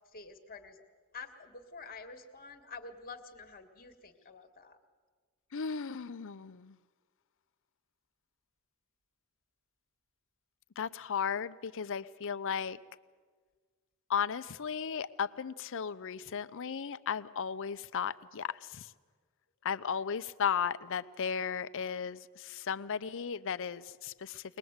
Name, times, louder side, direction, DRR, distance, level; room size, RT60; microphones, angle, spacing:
voice 1, 0.1-0.8 1.1-4.8, left 4 dB, 40° left, 6 dB, 1.5 m, -48 dB
voice 2, 5.5-6.7 10.8-12.8 14.1-18.5 18.7-18.9 19.6-24.4, left 7 dB, 60° left, 14 dB, 0.6 m, -35 dB
22.5 x 20.0 x 8.0 m, 1.5 s
head